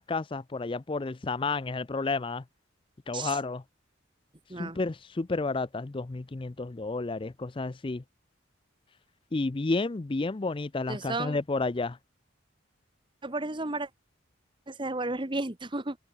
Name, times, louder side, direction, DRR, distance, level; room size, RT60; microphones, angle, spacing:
voice 1, 0.0-2.4 3.1-3.6 4.6-8.0 9.3-12.0, left 3 dB, 25° left, 0.5 m, -31 dB
voice 2, 10.9-11.4 13.2-13.9 14.7-16.0, right 2 dB, 25° right, 1.3 m, -33 dB
open air
head